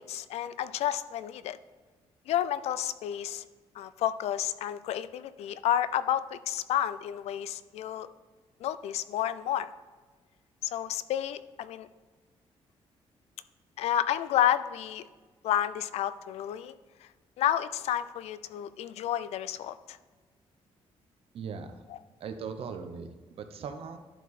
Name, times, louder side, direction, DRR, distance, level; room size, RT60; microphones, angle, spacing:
voice 1, 0.0-1.6 2.3-3.4 3.8-8.1 8.6-9.7 10.6-11.9 13.8-15.1 15.4-16.7 17.4-20.0, left 11 dB, 80° left, 15 dB, 0.4 m, -30 dB
voice 2, 21.3-21.8 22.2-24.0, right 6 dB, 65° right, 8 dB, 0.8 m, -39 dB
11.0 x 4.7 x 4.1 m, 1.4 s
cardioid pair, 120°, 11 cm